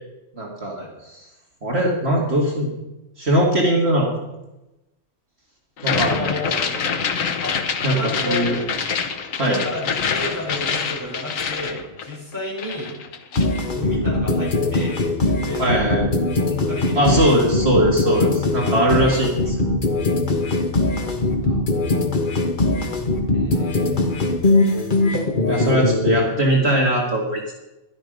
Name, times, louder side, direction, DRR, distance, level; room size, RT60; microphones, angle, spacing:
voice 1, 0.4-0.8 1.6-2.7 3.2-4.1 5.8-6.3 7.8-8.6 9.4-9.6 15.6-16.1 17.0-19.6 25.5-27.5, right 1 dB, 55° right, -1 dB, 2.2 m, -20 dB
sound 1, 5.8-12.3 12.6-13.6, left 6 dB, 90° left, 1.4 m, -26 dB
voice 2, 6.0-6.8 7.4-7.6 7.8-8.5 9.4-13.0 13.7-15.9 16.5-17.3 20.8-21.7 23.3-24.8, left 1 dB, 15° left, -6 dB, 5.7 m, -32 dB
sound 2, 13.3-26.3, left 2 dB, 40° left, 1.5 m, -21 dB
12.5 x 11.5 x 5.2 m, 0.97 s
omnidirectional pair, 1.3 m